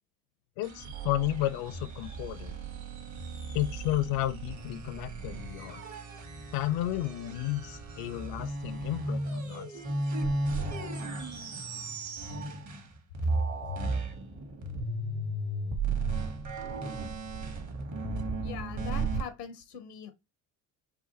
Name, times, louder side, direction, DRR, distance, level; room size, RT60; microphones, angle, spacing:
voice 1, 0.6-2.6 3.5-5.8 6.5-9.8, left 15 dB, 55° left, 0.5 m, -32 dB
sound 1, 0.6-12.9 13.1-19.2, right 2 dB, 40° right, 1.3 m, -35 dB
voice 2, 18.4-20.1, left 8 dB, 90° left, 0.8 m, -41 dB
4.7 x 2.4 x 2.9 m
hypercardioid pair, 55°, 46 cm